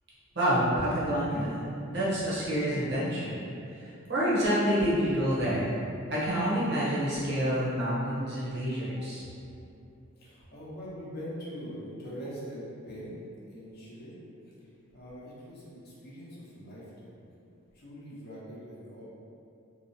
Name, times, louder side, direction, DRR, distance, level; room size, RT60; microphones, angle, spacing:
voice 1, 0.3-3.4 3.7-5.7 6.1-9.2, equal, 55° right, -8 dB, 0.8 m, -28 dB
voice 2, 10.2-13.2 13.5-14.2 14.9-17.2 17.7-19.0, equal, 50° left, -7 dB, 0.7 m, -42 dB
2.9 x 2.0 x 2.7 m, 2.6 s
head